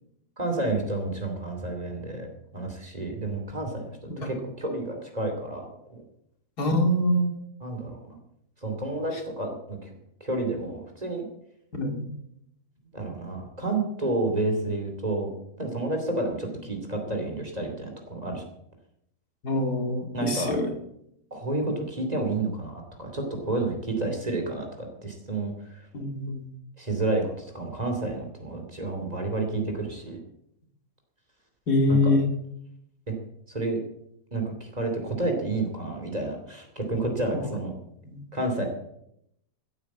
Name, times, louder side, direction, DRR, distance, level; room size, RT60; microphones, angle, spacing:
voice 1, 0.4-2.3 2.5-6.0 7.6-8.2 8.6-9.9 10.2-11.2 12.9-18.4 20.1-20.6 21.3-25.9 26.8-30.2 31.9-32.1 33.1-33.2 33.5-33.8 34.3-37.7 38.3-38.7, right 2 dB, 25° right, 3 dB, 2.8 m, -30 dB
voice 2, 6.6-7.3 11.7-12.1 19.4-20.7 25.9-26.5 31.7-32.2 38.0-38.2, left 1 dB, 75° left, 3 dB, 2.8 m, -24 dB
14.5 x 8.8 x 7.3 m, 0.77 s
omnidirectional pair, 1.7 m